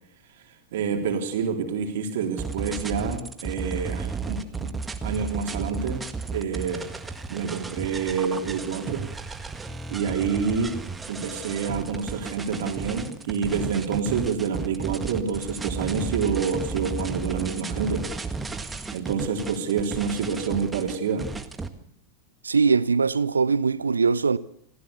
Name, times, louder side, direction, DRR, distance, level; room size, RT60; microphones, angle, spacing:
voice 1, 0.7-4.7 5.0-6.9 7.3-9.1 9.9-10.7 11.1-18.0 18.9-21.3, right 6 dB, 55° right, 3.7 m, -28 dB
sound 1, 2.4-21.7, right 4 dB, 10° right, 1.8 m, -33 dB
voice 2, 22.4-24.4, right 5 dB, 75° right, 0.9 m, -21 dB
27.0 x 16.0 x 7.1 m
figure-of-eight pair, 90°, 0 cm